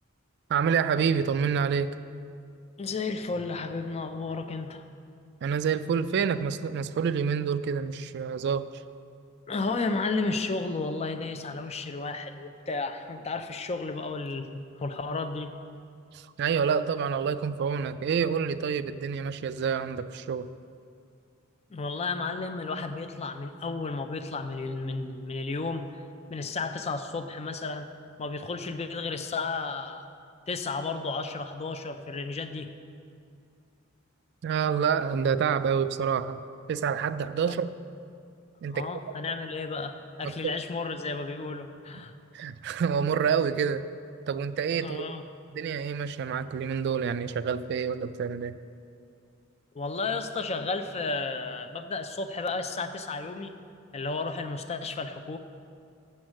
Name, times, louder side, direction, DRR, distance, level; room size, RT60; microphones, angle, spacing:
voice 1, 0.5-1.9 5.4-8.7 16.1-20.5 34.4-36.4 36.7-37.7 38.6-38.9 40.2-40.5 42.3-43.9 44.3-45.1 45.5-48.6, right 6 dB, 55° right, 13 dB, 0.3 m, -28 dB
voice 2, 2.8-4.8 9.5-15.5 21.7-26.0 26.3-27.9 28.2-30.0 30.5-32.7 37.5-37.6 38.7-42.1 44.8-45.2 49.7-53.5 53.9-55.4, left 3 dB, 30° left, 8 dB, 0.5 m, -33 dB
7.5 x 7.1 x 6.4 m, 2.3 s
head